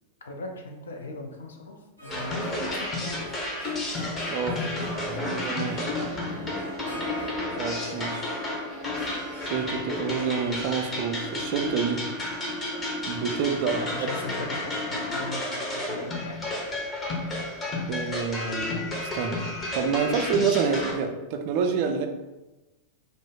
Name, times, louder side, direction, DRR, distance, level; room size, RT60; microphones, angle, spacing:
voice 1, 0.2-2.4 2.7-3.3 5.7-5.9 13.7-16.7, left 3 dB, 70° left, 2 dB, 0.4 m, -39 dB
Harp, 2.0-15.5, left 1 dB, 85° left, 0.8 m, -42 dB
sound 1, 2.1-20.9, left 1 dB, 20° left, 0.7 m, -32 dB
voice 2, 4.3-4.6 5.4-5.8 7.6-8.3 9.4-12.1 13.1-14.1 17.9-18.7 19.0-22.1, right 6 dB, 45° right, 5 dB, 0.3 m, -28 dB
2.5 x 2.0 x 3.6 m, 1.1 s
figure-of-eight pair, 90°, 0 cm